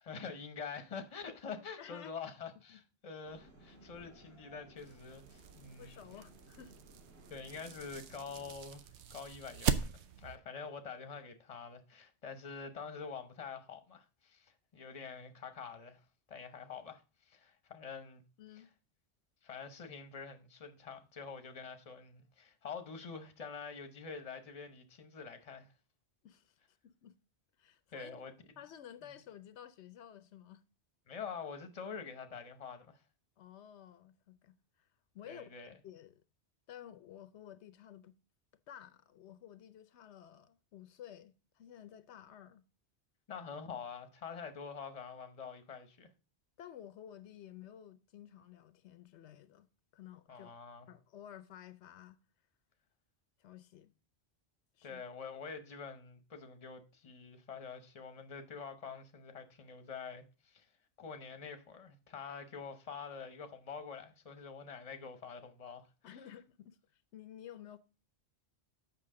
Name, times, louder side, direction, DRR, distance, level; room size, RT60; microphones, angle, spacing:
voice 1, 0.0-6.0 7.3-9.9 10.2-18.2 19.4-25.7 27.9-28.3 31.1-33.0 35.3-35.7 43.3-46.1 50.3-50.9 54.8-60.7 61.0-66.2, left 5 dB, 35° left, 0.8 m, -46 dB
voice 2, 1.8-2.1 2.7-2.8 5.8-6.7 18.4-18.7 26.2-26.6 26.8-27.2 27.6-28.3 28.6-30.6 33.4-34.9 35.1-35.4 35.8-36.2 36.7-38.1 38.7-42.6 46.6-49.7 49.9-50.5 50.9-52.2 53.4-53.9 54.7-55.0 66.0-67.8, left 10 dB, 80° left, 0.9 m, -53 dB
sound 1, 3.2-8.5, right 2 dB, 65° right, 3.5 m, -59 dB
sound 2, 4.8-10.4, right 8 dB, 90° right, 0.9 m, -40 dB
7.6 x 5.9 x 3.7 m
omnidirectional pair, 1.1 m